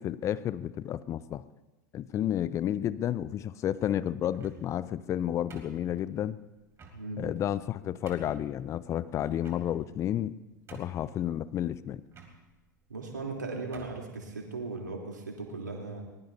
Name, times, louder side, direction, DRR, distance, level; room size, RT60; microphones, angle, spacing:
voice 1, 0.0-1.4 1.9-6.4 7.2-10.3 10.7-12.0, left 11 dB, 30° left, 17 dB, 0.5 m, -31 dB
sound 1, 4.3-4.8 5.5-6.2 6.8-7.0 7.6-7.7 8.1-8.4 9.4-9.9 10.3-10.4 10.7-11.2 12.1-12.3 13.2-13.3 13.7-14.0, right 4 dB, 25° right, 4.0 m, -49 dB
voice 2, 12.9-16.0, right 3 dB, 80° right, 0 dB, 3.5 m, -37 dB
23.0 x 21.0 x 2.8 m, 1.1 s
figure-of-eight pair, 85°, 10 cm